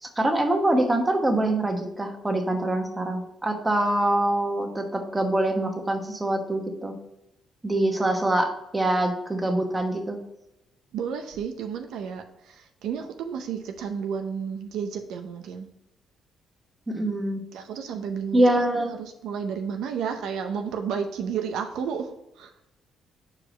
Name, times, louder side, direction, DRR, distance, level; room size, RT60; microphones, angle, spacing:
voice 1, 0.0-6.9 7.6-10.2 16.9-17.4 18.3-19.0, right 1 dB, 15° right, 4 dB, 1.1 m, -24 dB
voice 2, 10.9-15.7 17.5-22.5, right 7 dB, 85° right, 5 dB, 0.6 m, -32 dB
4.9 x 4.8 x 4.9 m, 0.88 s
cardioid pair, 90°, 0 cm